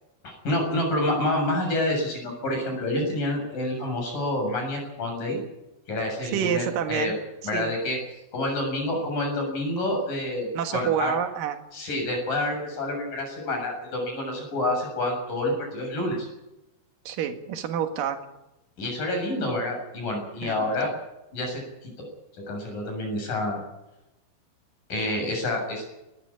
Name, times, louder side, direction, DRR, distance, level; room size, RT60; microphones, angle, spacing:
voice 1, 0.2-5.4 5.9-7.1 7.4-8.0 8.3-11.1 11.7-16.3 18.8-20.9 21.3-21.9 22.5-23.6 24.9-25.8, left 1 dB, 45° left, 2 dB, 8.9 m, -28 dB
voice 2, 6.3-7.1 7.5-7.7 10.5-11.6 17.1-18.3 20.4-20.7, right 8 dB, 60° right, 6 dB, 3.0 m, -28 dB
19.5 x 14.5 x 10.0 m, 0.94 s
omnidirectional pair, 5.2 m